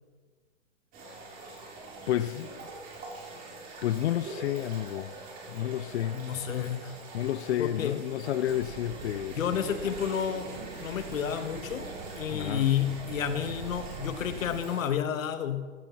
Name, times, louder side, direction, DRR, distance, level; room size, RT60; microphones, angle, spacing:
sound 1, 0.9-14.8, right 2 dB, 20° right, 2.7 m, -44 dB
voice 1, 2.1-2.6 3.8-5.1 5.5-6.2 7.1-9.6 12.3-12.6, left 12 dB, 55° left, 13 dB, 0.5 m, -30 dB
voice 2, 6.1-7.0 7.6-8.0 9.3-10.5 10.8-15.7, left 9 dB, 75° left, 10 dB, 1.4 m, -30 dB
sound 2, 8.5-14.6, right 10 dB, 40° right, 0.7 m, -45 dB
15.0 x 7.9 x 5.9 m, 1.4 s
hypercardioid pair, 160°, 40 cm